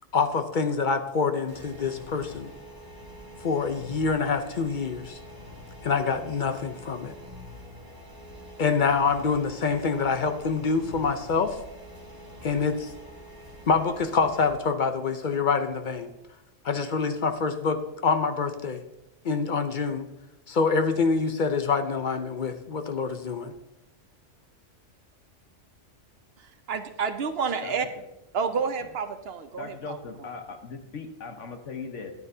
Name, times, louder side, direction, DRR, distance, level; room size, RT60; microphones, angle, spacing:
voice 1, 0.1-2.5 3.4-5.2 5.8-7.1 8.6-11.6 12.4-12.9 13.7-16.1 16.6-18.8 19.2-20.1 20.5-23.5, left 5 dB, 50° left, 8 dB, 0.7 m, -26 dB
sound 1, 1.5-14.5, equal, 20° right, 1.7 m, -45 dB
voice 2, 26.4-27.9 28.3-30.0, right 5 dB, 60° right, 9 dB, 0.8 m, -30 dB
voice 3, 29.6-32.1, left 4 dB, 80° left, 5 dB, 1.5 m, -39 dB
13.5 x 9.9 x 2.7 m, 0.90 s
omnidirectional pair, 1.3 m